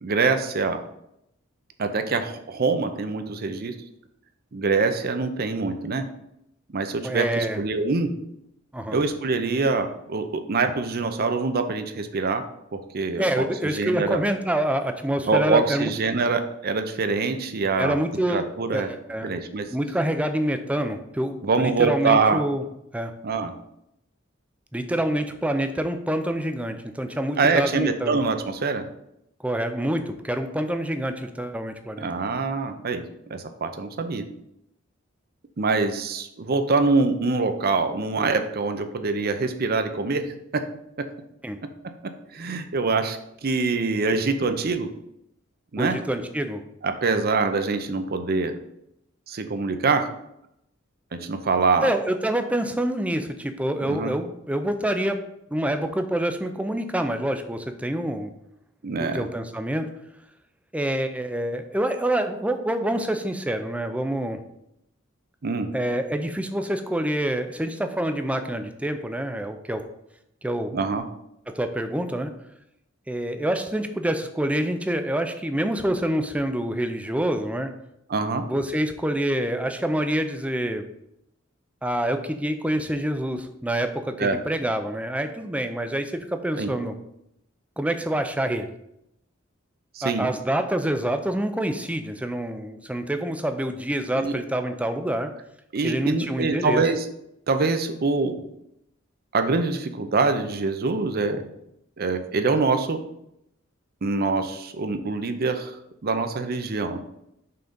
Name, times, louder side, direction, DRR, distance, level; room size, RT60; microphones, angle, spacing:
voice 1, 0.0-0.8 1.8-3.7 4.5-6.1 6.7-8.1 8.9-12.4 12.7-14.2 15.3-18.0 18.3-18.9 19.2-19.7 21.4-22.4 23.2-23.5 27.4-28.9 32.0-33.0 33.3-34.2 35.6-40.7 41.0-41.1 41.6-41.7 42.0-44.9 45.7-46.0 46.8-48.5 49.3-50.1 51.1-51.9 53.8-54.1 58.8-59.3 65.4-65.7 70.7-71.0 78.1-78.5 84.2-84.4 86.6-86.7 89.9-90.3 94.1-94.3 95.7-97.0 97.5-98.4 99.3-101.4 102.0-103.0 104.0-105.7 106.0-107.0, right 4 dB, 50° right, 8 dB, 0.6 m, -24 dB
voice 2, 7.0-7.6 8.7-9.0 13.2-15.9 17.8-18.4 18.7-19.3 19.7-22.6 22.9-23.1 24.7-28.2 29.4-32.1 41.4-41.6 45.8-46.6 51.8-55.2 55.5-58.3 59.0-59.9 60.7-64.4 65.7-69.8 70.4-70.7 71.5-72.3 73.1-77.7 78.4-80.8 81.8-86.9 87.8-88.7 90.0-95.3 95.8-96.8, right 1 dB, 5° right, 7 dB, 0.5 m, -26 dB
5.7 x 3.8 x 5.3 m, 0.80 s
head